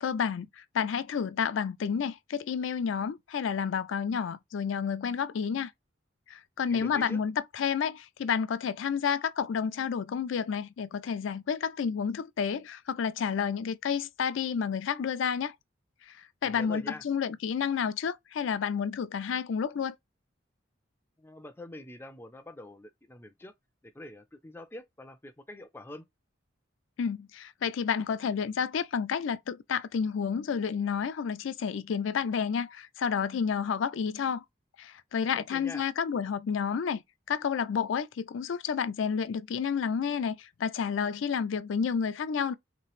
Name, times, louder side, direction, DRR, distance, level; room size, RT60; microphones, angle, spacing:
voice 1, 0.0-5.7 6.3-15.6 16.1-19.9 27.0-34.4 34.8-37.0 37.3-42.5, left 7 dB, 80° left, 0.4 m, -30 dB
voice 2, 6.7-7.2 16.4-17.0 21.2-23.5 23.8-26.1 35.3-35.8, left 1 dB, 10° left, 0.4 m, -45 dB
3.2 x 3.0 x 3.1 m
head